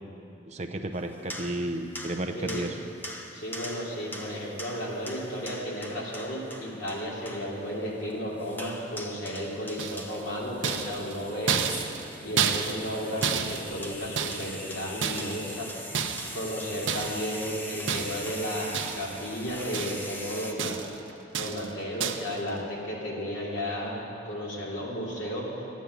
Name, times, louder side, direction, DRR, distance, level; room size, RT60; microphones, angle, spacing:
voice 1, 0.5-2.8, right 1 dB, 35° right, 6 dB, 0.6 m, -32 dB
sound 1, 0.9-20.5, left 1 dB, 10° left, 0.7 m, -42 dB
voice 2, 3.3-15.7 16.3-20.8 21.3-25.7, equal, 70° left, -5 dB, 2.9 m, -34 dB
sound 2, 9.8-10.2 10.6-13.0 13.2-14.6 15.0-15.5 15.9-16.4 16.9-17.3 17.9-18.4 18.7-19.2 19.5-20.2 20.6-21.0 21.3-21.7 22.0-22.4, right 7 dB, 70° right, 0.7 m, -31 dB
11.5 x 9.2 x 8.3 m, 2.8 s
head